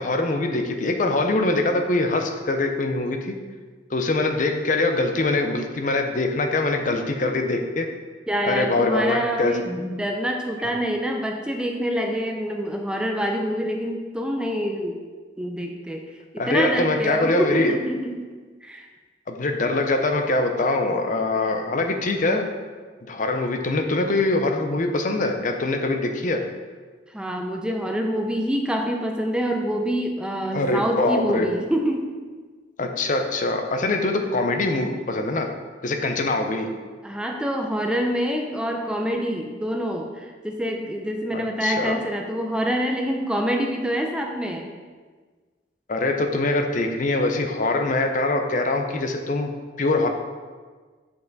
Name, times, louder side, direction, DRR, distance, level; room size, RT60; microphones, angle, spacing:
voice 1, 0.0-3.4 3.9-7.9 8.4-9.5 16.4-17.8 19.3-22.5 23.1-26.4 30.5-31.5 32.8-35.5 35.8-36.7 41.3-42.0 45.9-49.5 49.8-50.1, left 2 dB, 45° left, 5 dB, 0.6 m, -23 dB
voice 2, 8.3-15.0 15.4-16.1 16.3-18.3 18.6-18.9 27.1-32.1 37.0-44.7, equal, 5° right, 2 dB, 0.4 m, -26 dB
6.9 x 5.5 x 4.0 m, 1.5 s
head